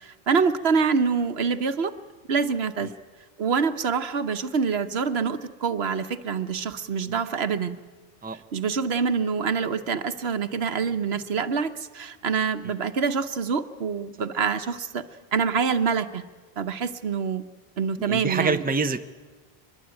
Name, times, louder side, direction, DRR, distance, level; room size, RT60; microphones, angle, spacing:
voice 1, 0.0-1.9 2.3-2.9 3.4-7.8 8.5-15.0 15.3-16.2 16.6-17.4 17.8-18.6, right 5 dB, 80° right, 9 dB, 1.2 m, -26 dB
voice 2, 18.0-19.0, right 4 dB, 10° right, 8 dB, 0.6 m, -27 dB
23.5 x 21.5 x 9.0 m, 1.4 s
omnidirectional pair, 1.0 m